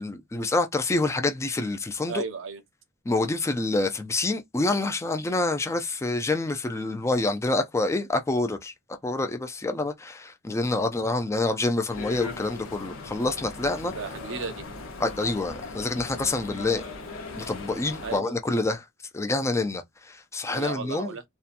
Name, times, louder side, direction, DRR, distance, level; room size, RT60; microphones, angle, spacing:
voice 1, 0.0-2.2 3.1-13.9 15.0-16.8 17.4-18.8 19.1-21.1, left 2 dB, 15° left, 0.4 m, -27 dB
voice 2, 2.1-2.6 13.8-14.6 18.0-18.4 20.5-21.2, right 5 dB, 65° right, 0.6 m, -34 dB
sound 1, 11.9-18.2, left 3 dB, 70° left, 0.7 m, -39 dB
2.7 x 2.2 x 2.5 m
head